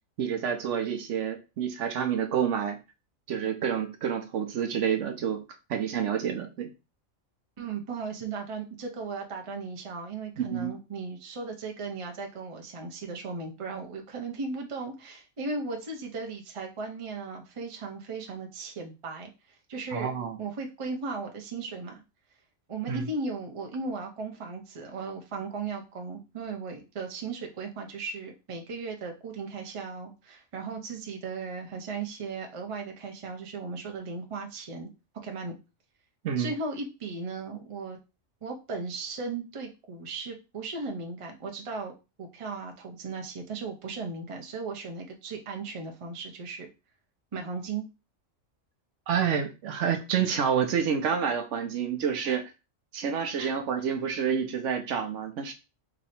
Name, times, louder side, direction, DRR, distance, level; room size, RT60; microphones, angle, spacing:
voice 1, 0.2-2.8 3.3-5.4 5.7-6.7 10.4-10.7 19.9-20.4 22.9-23.1 36.2-36.5 49.1-52.4 52.9-55.5, right 7 dB, 70° right, 6 dB, 0.9 m, -28 dB
voice 2, 7.6-19.3 19.7-22.0 22.7-34.9 35.2-35.6 36.4-38.0 38.4-41.9 42.2-46.7 47.3-47.9 52.2-52.4 53.4-53.6, right 4 dB, 35° right, 2 dB, 0.6 m, -36 dB
3.2 x 2.7 x 4.1 m, 0.29 s
omnidirectional pair, 1.3 m